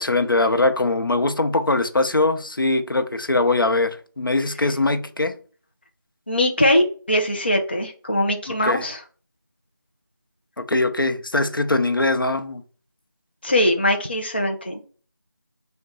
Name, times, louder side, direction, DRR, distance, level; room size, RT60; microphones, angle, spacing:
voice 1, 0.0-5.4 8.5-8.8 10.6-12.6, left 2 dB, 75° left, 0.7 m, -21 dB
voice 2, 6.3-9.0 13.4-14.8, left 1 dB, 30° left, 0.4 m, -21 dB
3.6 x 2.2 x 4.2 m
figure-of-eight pair, 170°, 12 cm